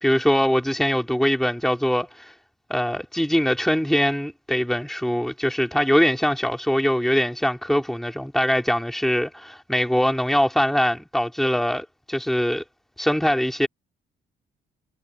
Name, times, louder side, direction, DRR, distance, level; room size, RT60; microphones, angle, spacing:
voice 1, 0.0-2.3 2.7-12.6 13.0-13.7, equal, ahead, 3.6 m, -22 dB
cardioid pair, 90°, 20 cm